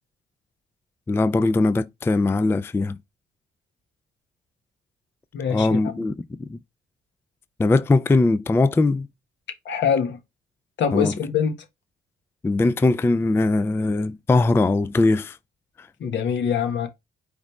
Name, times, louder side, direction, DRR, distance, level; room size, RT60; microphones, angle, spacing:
voice 1, 1.1-3.0 5.5-6.6 7.6-9.1 10.9-11.1 12.4-15.4 15.8-15.9, left 2 dB, 10° left, 0.3 m, -20 dB
voice 2, 5.3-5.8 9.6-10.2 10.8-11.5 16.0-16.9, left 7 dB, 65° left, 1.3 m, -23 dB
5.0 x 3.0 x 3.1 m
cardioid pair, 90°, 20 cm